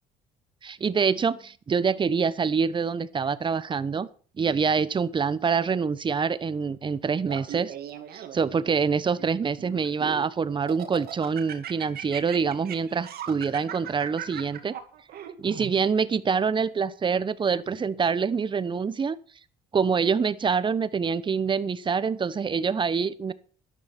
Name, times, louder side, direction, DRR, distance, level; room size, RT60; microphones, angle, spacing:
voice 1, 0.6-4.1 4.4-7.7 8.1-14.7 15.4-19.2 19.7-23.3, right 5 dB, 30° right, 16 dB, 1.0 m, -25 dB
Laughter, 7.2-8.6 9.2-10.2 10.7-15.7, right 10 dB, 65° right, 2.4 m, -38 dB
12.5 x 10.5 x 6.0 m, 0.41 s
cardioid pair, 110°, 17 cm